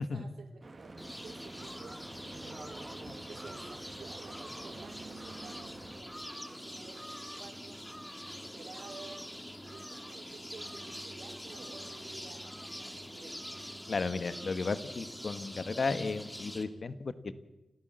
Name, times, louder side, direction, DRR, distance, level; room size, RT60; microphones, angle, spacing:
voice 1, 0.0-7.8 8.3-9.3 9.6-13.5, right 4 dB, 80° right, 3 dB, 3.9 m, -53 dB
Stream / Boat Water vehicle, 0.6-6.0, right 3 dB, 35° right, 2.1 m, -49 dB
sound 1, 1.0-16.6, equal, 5° left, 1.9 m, -44 dB
voice 2, 13.9-17.3, left 4 dB, 50° left, 12 dB, 1.3 m, -34 dB
29.0 x 15.5 x 7.7 m, 1.0 s
wide cardioid pair, 145°, 0 cm